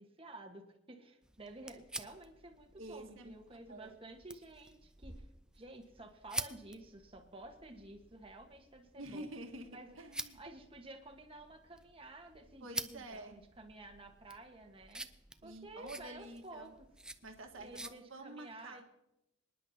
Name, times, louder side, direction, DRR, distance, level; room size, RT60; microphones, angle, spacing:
voice 1, 0.0-5.3 5.5-9.3 9.7-10.0 10.4-15.1 15.4-16.7 17.6-18.9, right 2 dB, 30° right, 3 dB, 1.4 m, -52 dB
sound 1, 1.2-17.9, right 2 dB, 5° right, 0.3 m, -49 dB
voice 2, 2.8-3.3 3.7-3.9 9.0-9.7 9.9-10.4 12.6-13.3 15.4-16.8 17.2-18.8, right 1 dB, 85° right, 3 dB, 1.6 m, -48 dB
25.5 x 10.0 x 2.8 m, 0.86 s
head